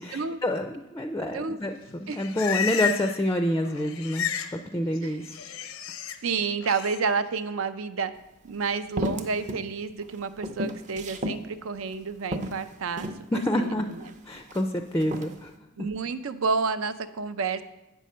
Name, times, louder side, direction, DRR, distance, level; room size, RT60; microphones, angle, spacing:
voice 1, 0.0-5.4 13.3-13.9 14.3-15.5, left 1 dB, 15° left, 7 dB, 0.4 m, -28 dB
Livestock farm animals working animals, 1.8-3.3 3.5-4.6 4.8-6.2 6.6-7.0, left 8 dB, 85° left, 0.6 m, -32 dB
voice 2, 6.2-8.1 8.4-14.0 15.8-17.6, right 5 dB, 80° right, 12 dB, 0.5 m, -30 dB
sound 1, 8.2-8.3 9.0-9.7 10.0-11.4 11.9-12.0 12.3-13.2 13.9-14.6 15.0-15.4, equal, 35° right, 0.6 m, -33 dB
8.5 x 6.3 x 5.5 m, 0.99 s
head